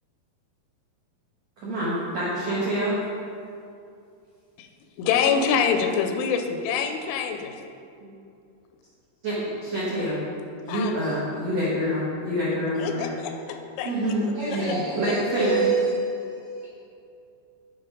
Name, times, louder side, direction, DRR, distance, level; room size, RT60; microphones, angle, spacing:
voice 1, 1.6-3.0 9.2-10.2 10.7-13.1 13.8-15.7, equal, 85° right, -8 dB, 1.5 m, -27 dB
voice 2, 5.0-7.5 10.7-10.9 12.8-14.8, left 6 dB, 85° left, 6 dB, 3.1 m, -26 dB
voice 3, 14.3-16.7, right 3 dB, 65° right, -9 dB, 1.9 m, -27 dB
10.0 x 4.7 x 5.0 m, 2.5 s
omnidirectional pair, 5.4 m